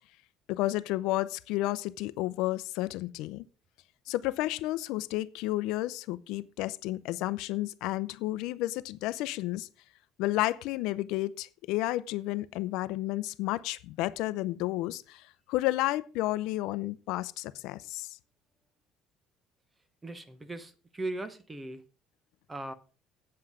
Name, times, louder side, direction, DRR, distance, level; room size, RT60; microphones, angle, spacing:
voice 1, 0.5-3.4 4.1-9.7 10.2-18.2, left 17 dB, 80° left, 0.5 m, -31 dB
voice 2, 20.0-21.9 22.5-22.7, right 2 dB, 15° right, 1.0 m, -38 dB
8.6 x 7.8 x 4.9 m
cardioid pair, 140°, 0 cm